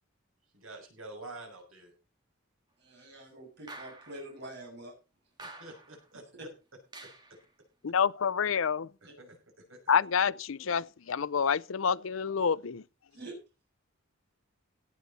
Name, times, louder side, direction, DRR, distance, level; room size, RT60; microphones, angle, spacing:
voice 1, 0.5-1.9 3.0-3.1 5.4-6.2 7.0-7.4 9.0-9.8, right 2 dB, 75° right, 6.2 m, -48 dB
voice 2, 2.8-4.9 9.1-9.2 13.1-13.4, right 1 dB, 55° right, 7.0 m, -45 dB
sound 1, 3.7-4.3 5.4-6.0 6.9-7.4, right 2 dB, 20° right, 2.2 m, -48 dB
voice 3, 7.8-8.9 9.9-12.8, left 6 dB, 70° left, 0.5 m, -28 dB
17.5 x 9.4 x 4.2 m
head